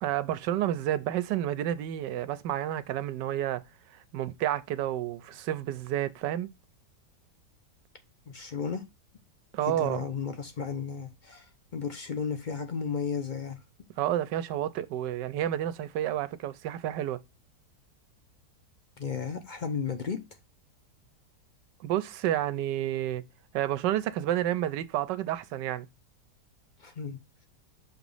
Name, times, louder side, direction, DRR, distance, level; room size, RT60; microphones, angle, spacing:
voice 1, 0.0-3.6 4.1-6.5 9.5-10.1 14.0-17.2 21.8-23.2 23.5-25.9, right 12 dB, 85° right, 1.3 m, -30 dB
voice 2, 8.3-8.8 9.6-11.5 11.7-13.6 19.0-20.2 26.8-27.2, left 6 dB, 45° left, 0.6 m, -34 dB
6.3 x 3.0 x 5.4 m
omnidirectional pair, 1.8 m